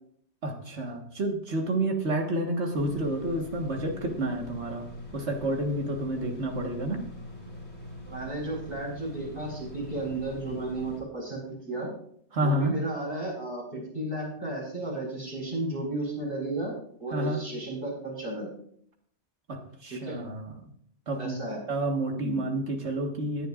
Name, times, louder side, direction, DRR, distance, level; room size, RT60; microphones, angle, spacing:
voice 1, 0.4-7.0 12.3-12.7 17.1-17.4 19.5-20.6 21.1-21.4 21.7-23.5, right 1 dB, 75° right, 2 dB, 1.9 m, -29 dB
sound 1, 2.7-11.0, left 1 dB, 75° left, 2.7 m, -43 dB
voice 2, 8.1-11.9 12.4-16.7 17.0-18.5 19.9-20.2 21.2-21.6 22.2-22.5, right 2 dB, 55° right, -3 dB, 5.2 m, -33 dB
17.5 x 10.0 x 2.5 m, 0.64 s
omnidirectional pair, 1.2 m